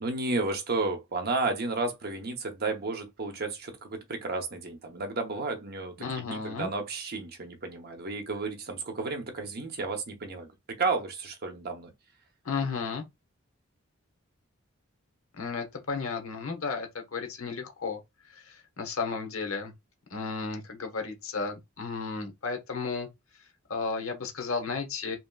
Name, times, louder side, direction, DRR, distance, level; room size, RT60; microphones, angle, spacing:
voice 1, 0.0-11.9, right 3 dB, 50° right, 0.8 m, -32 dB
voice 2, 6.0-6.7 12.4-13.0 15.3-18.0 18.3-19.7 20.1-23.1 23.7-25.2, left 4 dB, 75° left, 0.9 m, -33 dB
2.9 x 2.8 x 2.3 m
head